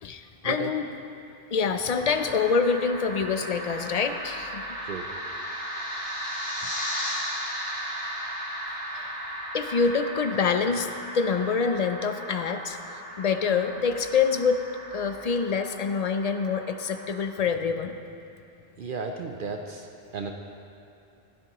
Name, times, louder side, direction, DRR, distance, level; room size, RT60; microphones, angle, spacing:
voice 1, 0.0-0.9 1.5-4.7 6.6-6.7 8.9-9.1 9.5-18.0, left 5 dB, 50° left, 8 dB, 0.6 m, -26 dB
sound 1, 1.9-17.2, equal, 75° left, 2.8 m, -36 dB
voice 2, 18.8-20.3, right 4 dB, 60° right, 3 dB, 0.8 m, -34 dB
15.5 x 12.0 x 3.0 m, 2.7 s
omnidirectional pair, 1.0 m